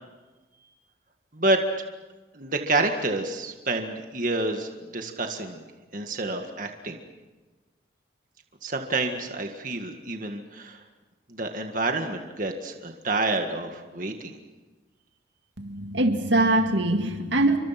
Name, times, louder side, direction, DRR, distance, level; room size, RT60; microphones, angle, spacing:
voice 1, 2.3-5.6 5.9-7.0 8.6-10.8 11.3-14.4, right 2 dB, 45° right, 4 dB, 1.8 m, -28 dB
voice 2, 15.6-17.6, right 2 dB, 75° right, 5 dB, 2.1 m, -23 dB
29.5 x 24.5 x 6.0 m, 1.2 s
head